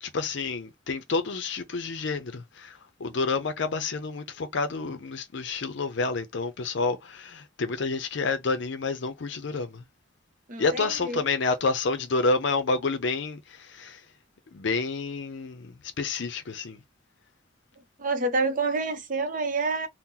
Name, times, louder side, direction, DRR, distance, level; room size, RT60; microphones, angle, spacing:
voice 1, 0.0-9.8 10.6-14.0 14.5-16.8, left 3 dB, 65° left, 0.5 m, -29 dB
voice 2, 10.5-11.3 18.0-19.9, right 3 dB, 40° right, 0.6 m, -28 dB
2.8 x 2.1 x 3.7 m
head